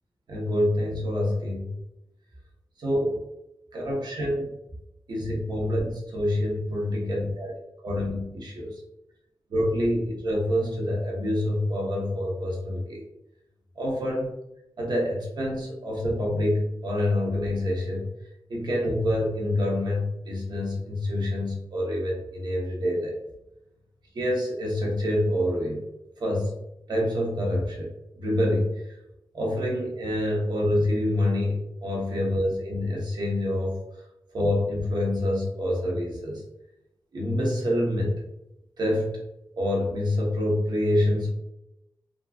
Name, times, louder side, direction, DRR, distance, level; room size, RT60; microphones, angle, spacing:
voice 1, 0.3-1.7 2.8-3.2 3.7-4.5 5.1-8.8 9.5-13.0 13.8-14.3 14.8-18.1 18.5-23.2 24.1-25.8 26.2-26.5 26.9-27.9 28.2-29.0 29.3-33.8 34.3-36.4 37.1-38.2 38.8-39.1 39.6-41.3, left 1 dB, 60° right, -2 dB, 1.0 m, -26 dB
3.6 x 2.4 x 2.3 m, 0.87 s
wide cardioid pair, 110°, 8 cm